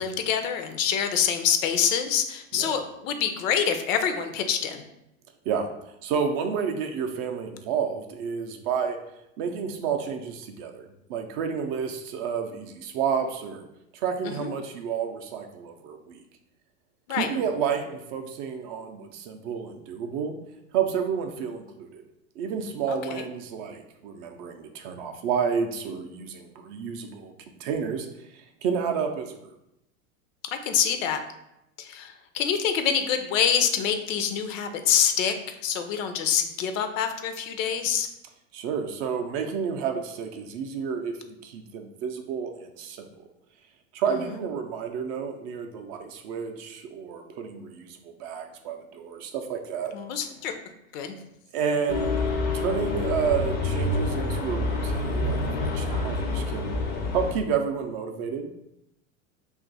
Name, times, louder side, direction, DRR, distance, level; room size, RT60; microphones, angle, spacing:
voice 1, 0.0-4.8 14.2-14.5 17.1-17.3 22.9-23.2 30.6-31.2 31.8-38.1 49.9-50.6 50.9-51.1, left 8 dB, 70° left, 8 dB, 0.6 m, -26 dB
voice 2, 6.0-9.0 9.4-13.7 13.9-16.2 17.1-20.4 20.7-22.0 22.4-27.3 27.6-28.1 28.3-29.5 38.5-43.1 43.9-49.9 51.5-56.7 57.1-58.5, right 6 dB, 45° right, 4 dB, 0.4 m, -30 dB
sound 1, 51.9-57.3, left 2 dB, 25° left, 0.4 m, -27 dB
2.6 x 2.4 x 3.9 m, 0.85 s
supercardioid pair, 125°, 41 cm